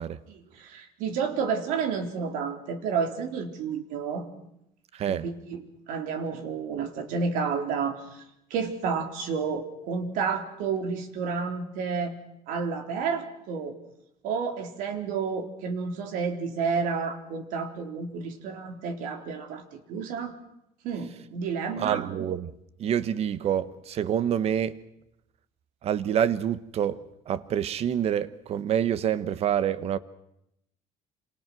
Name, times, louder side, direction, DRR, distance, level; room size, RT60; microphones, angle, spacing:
voice 1, 0.3-4.3 5.1-8.2 8.5-12.2 12.5-13.8 14.2-19.6 19.9-20.3 20.8-22.0, right 5 dB, 80° right, 3.9 m, -30 dB
voice 2, 4.9-5.3 21.8-22.5 22.8-24.8 25.8-27.0 27.3-30.0, right 9 dB, 50° right, 1.3 m, -27 dB
28.0 x 27.0 x 6.3 m
cardioid pair, 135°, 14 cm